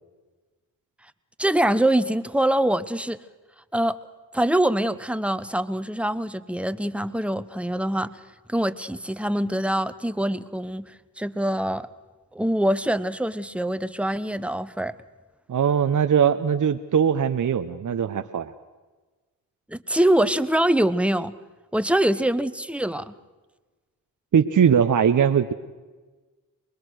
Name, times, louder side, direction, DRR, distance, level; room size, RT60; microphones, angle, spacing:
voice 1, 1.4-3.2 3.7-4.0 4.3-8.1 8.5-11.9 12.3-14.9 19.7-21.3 21.7-23.1, right 1 dB, 5° right, 13 dB, 1.1 m, -24 dB
voice 2, 15.5-18.5 24.3-25.5, right 8 dB, 55° right, 9 dB, 0.9 m, -20 dB
24.0 x 20.5 x 6.4 m, 1.3 s
supercardioid pair, 40°, 36 cm